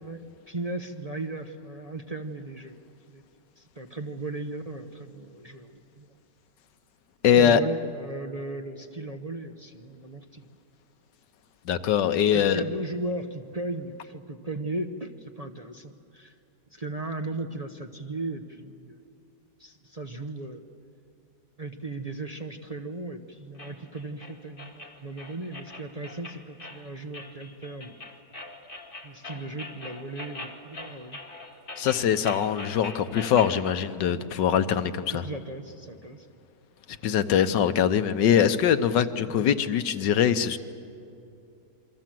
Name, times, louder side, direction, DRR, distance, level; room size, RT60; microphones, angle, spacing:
voice 1, 0.0-2.8 3.1-3.2 3.6-6.2 7.3-10.5 12.3-16.3 16.7-19.0 19.6-20.6 21.6-28.0 29.0-31.2 35.1-36.4 38.4-38.5 39.0-39.5, right 2 dB, 30° right, 4 dB, 0.8 m, -37 dB
voice 2, 7.2-7.6 11.7-12.6 31.8-35.2 37.0-40.6, left 8 dB, 85° left, 11 dB, 1.6 m, -22 dB
sound 1, 23.6-33.6, left 2 dB, 30° left, 2.3 m, -42 dB
28.0 x 23.5 x 7.7 m, 2.6 s
omnidirectional pair, 1.9 m